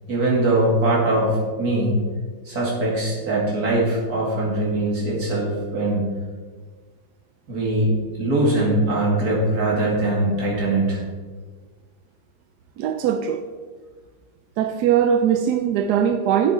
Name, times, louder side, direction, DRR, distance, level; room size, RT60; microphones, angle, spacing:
voice 1, 0.1-1.9 2.5-6.0 7.5-11.0, right 1 dB, 50° right, -4 dB, 2.9 m, -21 dB
voice 2, 12.8-13.4 14.6-16.5, right 8 dB, 75° right, 8 dB, 1.0 m, -20 dB
8.8 x 7.8 x 4.4 m, 1.5 s
omnidirectional pair, 2.0 m